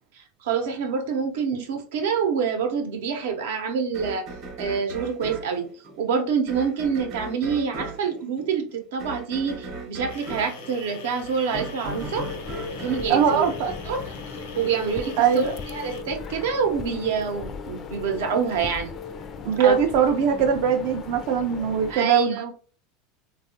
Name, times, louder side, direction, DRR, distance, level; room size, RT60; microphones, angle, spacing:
voice 1, 0.4-4.3 4.6-5.7 6.0-12.3 12.8-13.5 13.8-14.0 14.3-18.9 19.6-19.8 21.9-22.5, right 6 dB, 85° right, 5 dB, 0.7 m, -26 dB
sound 1, 3.9-14.2, right 3 dB, 45° right, 0.8 m, -38 dB
sound 2, 10.1-16.0, left 3 dB, 85° left, 0.8 m, -42 dB
sound 3, 11.8-22.0, left 6 dB, 30° left, 0.3 m, -37 dB
voice 2, 13.1-13.7 15.2-15.5 19.4-22.5, right 7 dB, 60° right, 3 dB, 0.4 m, -21 dB
3.5 x 2.3 x 2.7 m, 0.41 s
supercardioid pair, 145°, 0 cm